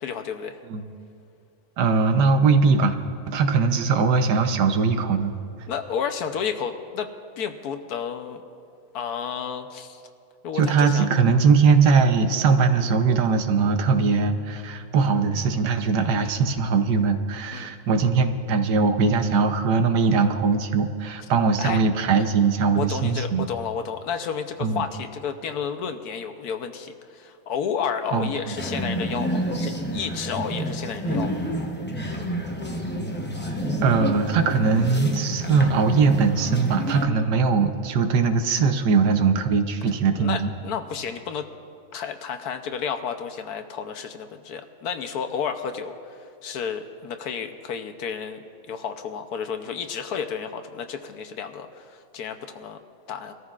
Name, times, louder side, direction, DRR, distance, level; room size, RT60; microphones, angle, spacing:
voice 1, 0.0-0.6 5.7-8.4 8.9-10.0 10.4-11.1 16.0-16.2 17.5-17.7 21.6-21.8 22.7-31.4 40.2-41.5 41.9-48.4 48.7-52.8 53.1-53.3, left 7 dB, 70° left, 7 dB, 1.2 m, -31 dB
voice 2, 1.8-2.9 3.3-5.3 10.5-23.5 24.6-24.8 28.1-28.3 33.8-40.5, right 4 dB, 85° right, 7 dB, 1.4 m, -21 dB
sound 1, 28.6-37.1, equal, 15° left, 0.4 m, -29 dB
23.5 x 14.0 x 2.4 m, 2.4 s
omnidirectional pair, 1.8 m